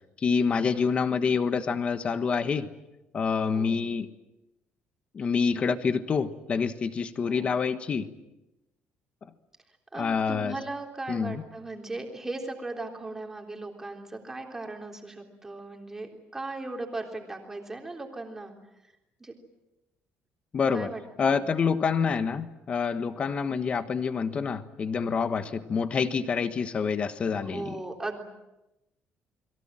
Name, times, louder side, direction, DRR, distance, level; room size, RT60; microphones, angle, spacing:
voice 1, 0.2-2.7 3.1-4.1 5.1-8.0 9.9-10.6 11.1-11.4 20.5-20.9 21.2-27.8, left 5 dB, 30° left, 11 dB, 1.4 m, -27 dB
voice 2, 7.2-7.6 9.9-18.5 19.2-19.3 20.7-21.5 27.4-28.3, right 2 dB, 10° right, 2 dB, 3.6 m, -38 dB
30.0 x 22.5 x 7.6 m, 0.96 s
cardioid pair, 165°, 4 cm